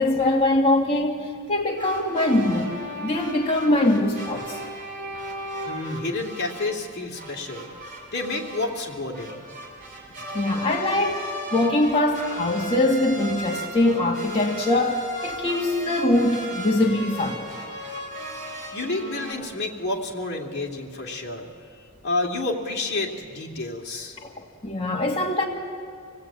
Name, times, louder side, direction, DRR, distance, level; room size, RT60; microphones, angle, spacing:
voice 1, 0.0-4.6 10.3-17.4 24.2-25.5, left 1 dB, 25° left, -2 dB, 1.8 m, -23 dB
sound 1, 1.8-19.3, right 1 dB, 40° right, 5.3 m, -36 dB
voice 2, 5.6-7.7 8.1-9.4 18.7-21.5 22.0-24.2, left 2 dB, 50° left, 0 dB, 2.5 m, -29 dB
26.0 x 18.0 x 8.7 m, 2.2 s
head